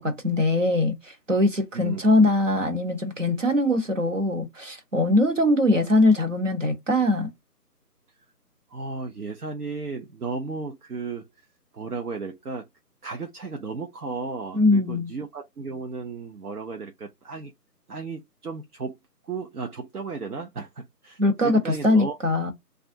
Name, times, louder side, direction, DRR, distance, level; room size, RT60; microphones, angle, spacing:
voice 1, 0.0-7.3 14.5-15.1 21.2-22.5, left 2 dB, 50° right, 1.0 m, -22 dB
voice 2, 8.7-11.3 11.7-12.7 13.0-17.5 17.9-19.0 19.3-22.2, right 4 dB, 65° right, 0.7 m, -34 dB
3.2 x 2.5 x 2.6 m
figure-of-eight pair, 175°, 49 cm